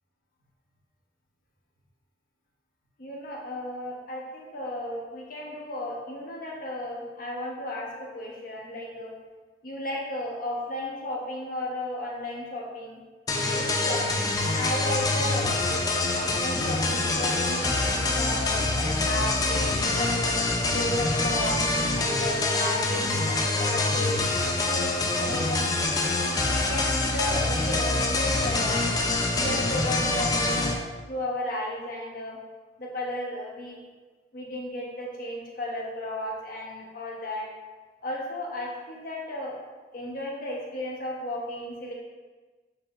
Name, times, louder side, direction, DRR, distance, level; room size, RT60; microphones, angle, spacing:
voice 1, 3.0-9.1 9.6-13.0 13.5-14.0 14.5-20.3 20.7-21.6 21.9-24.3 24.5-25.7 26.5-29.0 29.4-32.4 32.8-33.8 34.3-37.5 38.0-39.6 39.9-41.9, left 1 dB, 50° left, -2 dB, 0.9 m, -34 dB
sound 1, 13.3-30.7, left 2 dB, 20° left, 0.4 m, -25 dB
6.7 x 3.1 x 2.3 m, 1.3 s
head